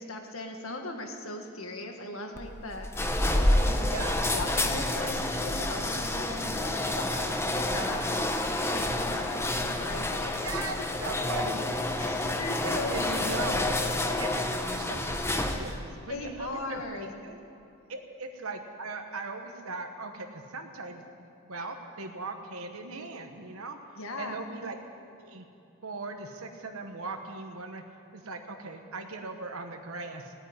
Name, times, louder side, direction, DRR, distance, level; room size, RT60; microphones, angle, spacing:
voice 1, 0.0-10.4 10.8-10.9 12.0-13.5 16.1-17.2 23.9-24.4, left 2 dB, 70° left, 4 dB, 1.8 m, -39 dB
sound 1, 2.4-15.9, left 1 dB, 10° left, 0.9 m, -29 dB
voice 2, 3.8-4.3 7.1-7.3 10.2-10.8 11.0-11.9 12.6-13.7 14.2-17.4 17.9-23.8 24.2-24.7 25.2-25.5 25.8-27.8 28.1-30.3, right 3 dB, 75° right, 4 dB, 1.2 m, -39 dB
16.5 x 9.1 x 9.7 m, 2.8 s
head